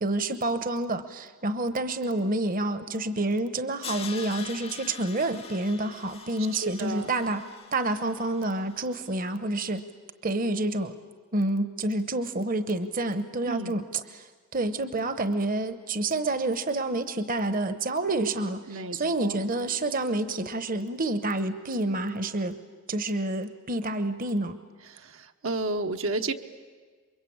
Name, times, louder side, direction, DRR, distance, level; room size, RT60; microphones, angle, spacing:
voice 1, 0.0-7.4 7.7-9.8 10.2-11.0 11.3-22.6 22.9-24.6, right 2 dB, 40° right, 11 dB, 1.0 m, -28 dB
Crash cymbal, 3.8-8.9, left 6 dB, 25° left, 0.8 m, -43 dB
voice 2, 6.6-7.1 13.4-13.8 18.7-19.4 24.9-26.3, right 2 dB, 70° right, 5 dB, 1.1 m, -32 dB
28.5 x 23.0 x 8.7 m, 1.5 s
head